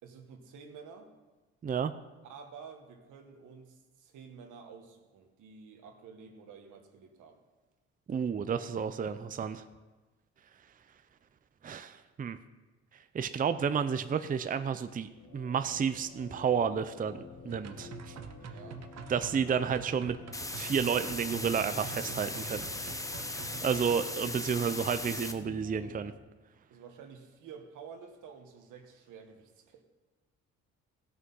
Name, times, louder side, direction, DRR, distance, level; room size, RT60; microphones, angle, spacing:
voice 1, 0.0-1.1 2.2-7.4 18.5-18.8 26.7-29.8, right 6 dB, 85° right, 5 dB, 1.5 m, -50 dB
voice 2, 8.1-9.6 11.6-12.4 13.1-17.2 17.4-18.1 19.1-20.2 20.6-22.9 23.3-26.1, right 7 dB, 30° right, 10 dB, 0.5 m, -31 dB
sound 1, 14.7-26.2, left 5 dB, 60° left, 1.1 m, -50 dB
sound 2, 17.5-24.0, right 7 dB, 60° right, 0.9 m, -46 dB
sound 3, 20.3-25.3, left 2 dB, 10° left, 0.8 m, -38 dB
16.0 x 6.2 x 5.6 m, 1.2 s
cardioid pair, 90°, 30 cm